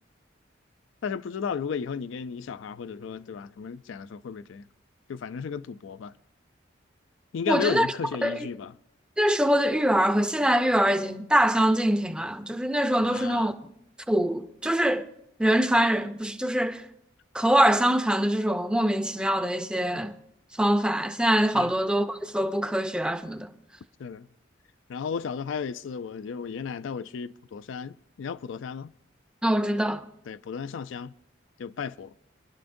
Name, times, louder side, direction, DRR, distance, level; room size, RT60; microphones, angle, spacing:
voice 1, 1.0-4.6 5.1-6.1 7.3-8.7 13.0-13.5 21.5-21.7 24.0-24.3 24.9-28.9 30.3-31.1 31.6-32.1, left 6 dB, 80° left, 0.4 m, -34 dB
voice 2, 7.5-7.9 8.2-8.5 9.2-13.7 14.1-15.1 15.4-16.9 17.3-20.1 20.6-23.5 29.4-30.0, right 1 dB, 5° right, 0.5 m, -24 dB
25.0 x 11.5 x 2.6 m
head